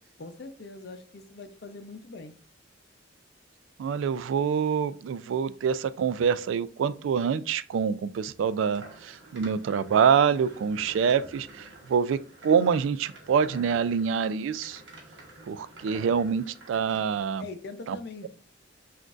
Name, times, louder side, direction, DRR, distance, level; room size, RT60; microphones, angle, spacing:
voice 1, 0.2-2.3 17.4-18.3, left 3 dB, 60° left, 0.6 m, -42 dB
voice 2, 3.8-14.8 15.5-17.5 17.9-18.0, right 7 dB, 85° right, 0.3 m, -26 dB
sound 1, 8.7-17.2, right 2 dB, 70° right, 1.2 m, -49 dB
6.0 x 2.5 x 2.4 m
head